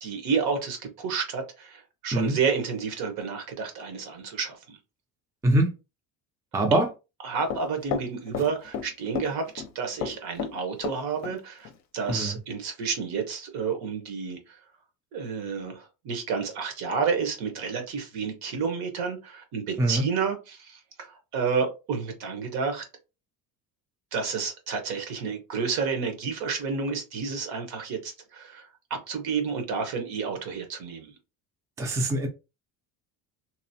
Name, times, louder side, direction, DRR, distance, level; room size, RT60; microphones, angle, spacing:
voice 1, 0.0-4.8 7.2-14.4 15.1-22.8 24.1-31.1, right 5 dB, 75° right, 1.1 m, -30 dB
voice 2, 5.4-5.7 6.5-6.9 12.1-12.4 19.8-20.0 31.8-32.3, right 1 dB, 10° right, 0.4 m, -23 dB
Run, 7.5-8.9 9.1-9.7 10.0-11.4 11.6-11.7 12.1-12.2, left 7 dB, 45° left, 0.5 m, -32 dB
2.9 x 2.0 x 2.7 m
cardioid pair, 125°, 39 cm